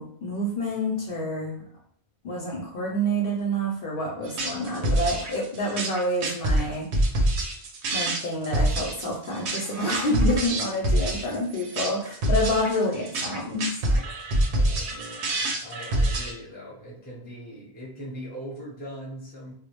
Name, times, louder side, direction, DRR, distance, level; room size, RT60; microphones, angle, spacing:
voice 1, 0.0-1.6 2.2-6.9 7.9-13.7, equal, 65° left, -1 dB, 0.7 m, -28 dB
sound 1, 4.2-16.3, right 1 dB, 85° right, 0.9 m, -26 dB
voice 2, 14.5-19.5, equal, 10° left, -5 dB, 0.6 m, -40 dB
2.3 x 2.1 x 2.9 m, 0.65 s
omnidirectional pair, 1.1 m